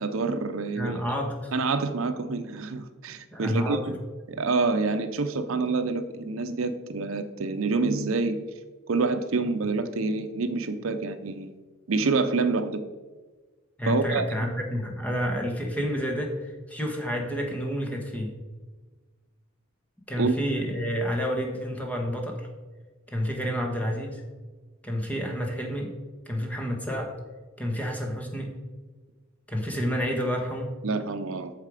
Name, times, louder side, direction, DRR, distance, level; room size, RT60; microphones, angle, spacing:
voice 1, 0.0-1.0 1.5-3.9 4.3-8.4 8.9-11.5 11.9-12.8 13.9-14.2 20.2-20.3 30.8-31.5, right 3 dB, 70° right, 9 dB, 0.6 m, -27 dB
voice 2, 0.7-1.5 3.3-3.8 13.8-18.3 20.1-22.5 23.1-24.2 24.8-25.9 26.3-27.1 27.6-28.5 29.5-30.7, equal, 5° left, 1 dB, 1.3 m, -29 dB
8.6 x 6.6 x 4.9 m, 1.3 s
head